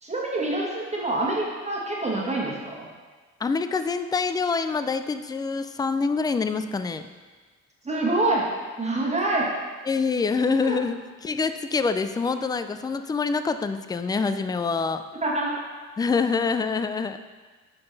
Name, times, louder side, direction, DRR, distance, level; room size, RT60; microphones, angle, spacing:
voice 1, 0.0-2.9 7.8-9.5 10.6-10.8 15.2-15.6, right 2 dB, 20° right, -3 dB, 1.5 m, -26 dB
voice 2, 3.4-7.1 9.9-15.0 16.0-17.2, left 4 dB, 15° left, 10 dB, 0.3 m, -26 dB
9.7 x 3.8 x 4.0 m, 1.4 s
cardioid pair, 90°, 30 cm